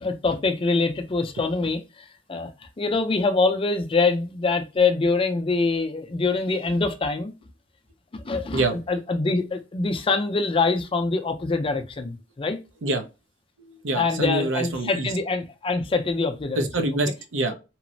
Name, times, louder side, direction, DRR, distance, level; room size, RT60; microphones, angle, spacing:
voice 1, 0.0-2.5 2.8-7.3 8.2-12.6 13.9-16.6, left 3 dB, 30° left, 0.4 m, -24 dB
voice 2, 13.6-15.1 16.5-17.5, right 2 dB, 90° right, 0.6 m, -26 dB
2.9 x 2.0 x 2.6 m
head